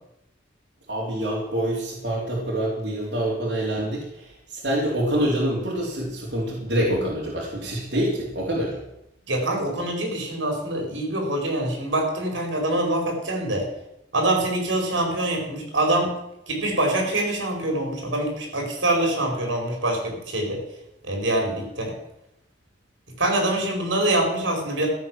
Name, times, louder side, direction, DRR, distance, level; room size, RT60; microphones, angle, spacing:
voice 1, 0.9-8.8, right 1 dB, 65° right, -5 dB, 4.0 m, -26 dB
voice 2, 9.3-13.7 14.1-16.2 16.5-20.6 21.0-21.9 23.2-24.9, right 1 dB, 80° right, 1 dB, 5.1 m, -24 dB
15.0 x 8.6 x 7.6 m, 0.81 s
head